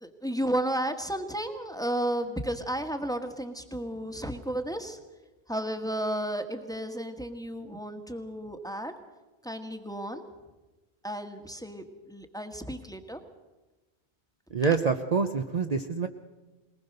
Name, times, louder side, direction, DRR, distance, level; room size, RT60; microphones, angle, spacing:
voice 1, 0.0-5.0 5.5-8.9 9.4-10.2 11.0-13.2, right 1 dB, 5° left, 6 dB, 1.4 m, -33 dB
voice 2, 14.5-16.1, right 5 dB, 40° right, 5 dB, 0.8 m, -26 dB
21.0 x 19.5 x 6.6 m, 1.1 s
omnidirectional pair, 1.1 m